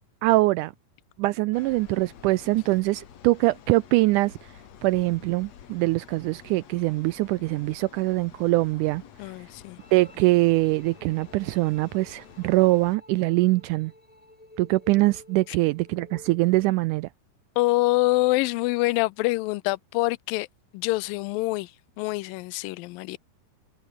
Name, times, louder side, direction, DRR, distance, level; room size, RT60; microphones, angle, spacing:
voice 1, 0.2-0.7 1.2-4.3 4.8-9.0 9.9-13.9 14.6-17.1, right 20 dB, 80° right, 1.8 m, -23 dB
sound 1, 1.5-13.0, left 9 dB, 55° left, 2.8 m, -50 dB
voice 2, 9.2-9.8 15.5-15.6 17.6-20.5 20.7-21.7 22.0-23.2, left 21 dB, 85° left, 2.3 m, -25 dB
sound 2, 9.8-16.8, left 1 dB, 10° left, 3.5 m, -52 dB
omnidirectional pair, 4.0 m